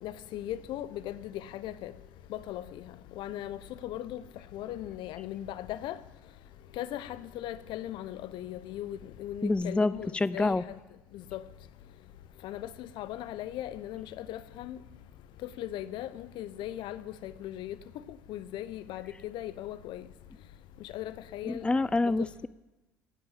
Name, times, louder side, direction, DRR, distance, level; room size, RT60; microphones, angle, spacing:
voice 1, 0.0-1.9 2.3-4.2 4.5-6.0 6.8-10.8 11.1-11.4 12.4-14.8 15.4-17.8 18.1-20.0 20.8-21.7 22.0-22.3, left 12 dB, 60° left, 0.9 m, -38 dB
voice 2, 9.4-10.6 21.4-22.5, left 2 dB, 10° left, 0.5 m, -27 dB
17.0 x 8.9 x 8.6 m
hypercardioid pair, 65°, 9 cm